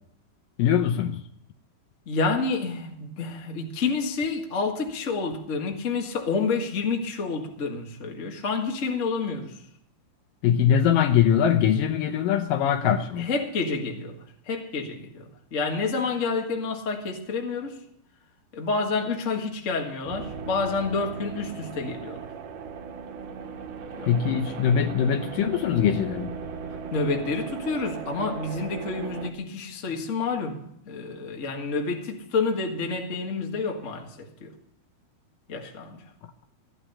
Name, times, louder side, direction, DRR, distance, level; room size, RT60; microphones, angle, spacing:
voice 1, 0.6-1.2 10.4-13.3 24.1-26.3, left 8 dB, 75° left, 2.3 m, -22 dB
voice 2, 2.0-9.6 10.7-10.8 13.2-14.1 14.4-17.8 18.5-22.3 23.9-24.2 26.9-34.5 35.5-36.0, left 4 dB, 45° left, 0.9 m, -29 dB
sound 1, 20.1-29.3, right 6 dB, 65° right, 2.5 m, -37 dB
15.0 x 11.0 x 5.6 m
omnidirectional pair, 4.5 m